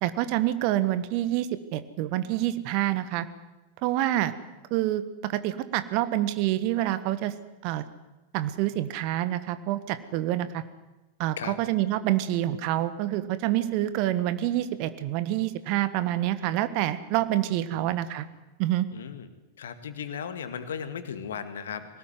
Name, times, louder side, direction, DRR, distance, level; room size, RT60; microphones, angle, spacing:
voice 1, 0.0-3.3 3.8-4.3 4.7-7.3 7.6-7.9 8.3-10.6 11.2-18.3 18.6-18.9, right 14 dB, 45° right, 13 dB, 1.5 m, -27 dB
voice 2, 18.9-19.3 19.6-22.0, left 7 dB, 65° left, 10 dB, 2.1 m, -36 dB
21.5 x 19.0 x 9.5 m, 1.0 s
figure-of-eight pair, 90°, 0 cm